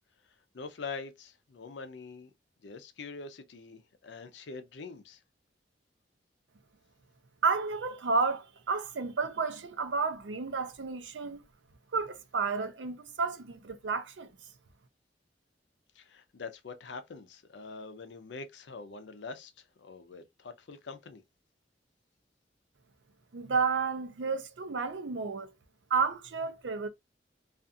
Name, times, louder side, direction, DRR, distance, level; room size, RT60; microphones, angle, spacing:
voice 1, 0.5-2.3 2.6-5.2 16.0-21.2, left 4 dB, 75° left, 0.5 m, -44 dB
voice 2, 7.4-11.4 11.9-14.3 23.3-25.5 25.9-26.9, right 4 dB, 85° right, 0.5 m, -31 dB
2.4 x 2.4 x 2.6 m
head